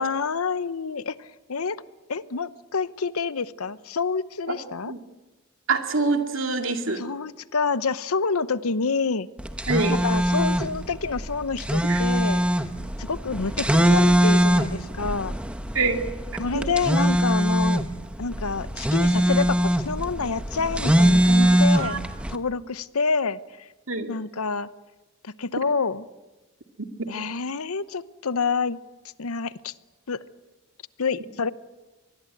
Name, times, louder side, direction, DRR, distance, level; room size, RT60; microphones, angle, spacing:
voice 1, 0.0-1.8 2.1-4.9 7.0-9.3 10.0-12.4 13.0-15.3 16.4-17.9 18.2-22.0 22.3-23.7 24.1-24.7 25.2-26.0 27.1-28.8 29.2-29.7 30.1-30.2 31.0-31.5, left 4 dB, 85° left, 15 dB, 0.9 m, -27 dB
voice 2, 5.7-7.0 9.7-10.0 11.8-12.0 15.7-16.0 16.5-16.7 21.8-22.0 23.9-24.1, right 3 dB, 65° right, 5 dB, 2.4 m, -25 dB
sound 1, 9.4-22.4, right 1 dB, 5° right, 1.0 m, -22 dB
24.5 x 20.5 x 9.1 m, 1.1 s
head